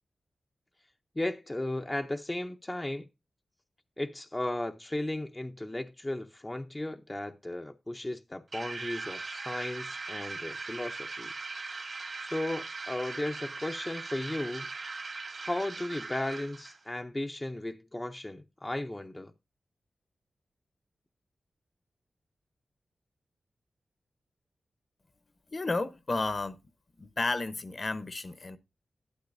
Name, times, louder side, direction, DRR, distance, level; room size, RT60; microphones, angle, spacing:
voice 1, 1.2-3.1 4.0-11.3 12.2-14.7 15.4-19.3, left 1 dB, 20° left, 0.6 m, -35 dB
sound 1, 8.5-16.8, right 3 dB, 55° right, 1.6 m, -40 dB
voice 2, 25.5-26.6 27.0-28.6, left 3 dB, 45° left, 0.9 m, -32 dB
11.5 x 11.5 x 2.6 m
cardioid pair, 75°, 0 cm